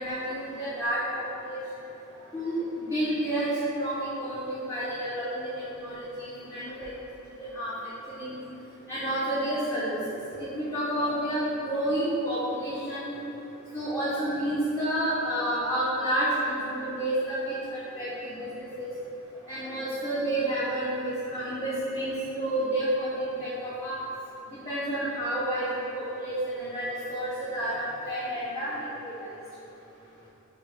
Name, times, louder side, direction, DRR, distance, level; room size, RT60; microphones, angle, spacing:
voice 1, 0.0-1.6 2.3-3.5 3.8-5.5 5.7-6.9 7.5-7.7 8.2-8.4 8.9-10.0 10.4-13.2 13.7-18.9 19.5-24.0 24.5-25.7 25.9-29.3, right 1 dB, 15° left, -11 dB, 0.5 m, -30 dB
4.4 x 2.0 x 3.1 m, 3.0 s
head